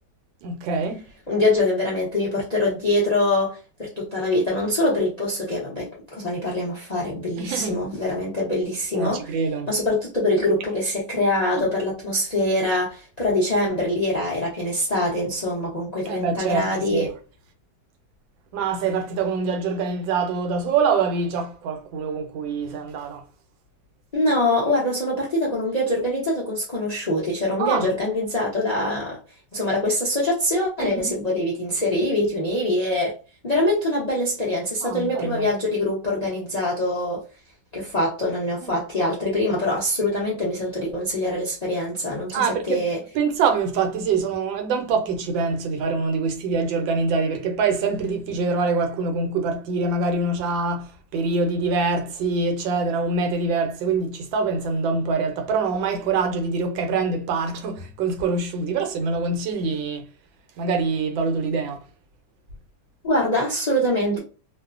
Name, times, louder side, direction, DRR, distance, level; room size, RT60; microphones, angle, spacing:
voice 1, 0.4-1.0 7.4-7.8 8.9-9.7 11.5-11.7 16.1-17.1 18.5-23.2 27.6-27.9 30.8-31.2 34.8-35.5 38.6-38.8 42.3-42.8 43.1-60.1 60.6-61.8, right 4 dB, 85° right, 1.4 m, -25 dB
voice 2, 1.3-9.2 9.7-17.1 24.1-29.2 29.5-33.1 33.4-37.2 37.7-43.0 63.0-64.2, left 1 dB, 55° left, 0.4 m, -24 dB
3.1 x 2.1 x 2.4 m
omnidirectional pair, 2.0 m